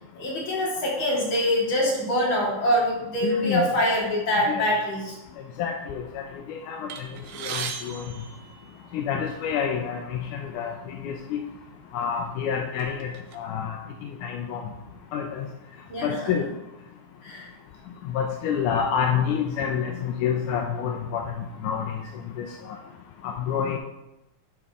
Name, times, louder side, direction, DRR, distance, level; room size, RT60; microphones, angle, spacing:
voice 1, 0.1-5.2 15.9-16.3 17.2-17.5, equal, 40° left, -5 dB, 3.2 m, -24 dB
voice 2, 3.2-3.6 4.5-4.7 5.6-6.2 6.5-7.1 7.4-8.0 8.9-11.4 11.9-13.8 14.2-14.6 15.1-15.5 16.0-16.4 18.1-21.2 21.6-22.0 22.4-22.8 23.2-23.8, left 7 dB, 80° left, 2 dB, 2.2 m, -28 dB
sound 1, 6.9-9.2 10.1-10.2 10.5-10.7 11.5-11.7 12.2-13.4, right 7 dB, 70° right, 1.7 m, -37 dB
11.0 x 5.9 x 3.7 m, 0.94 s
omnidirectional pair, 3.6 m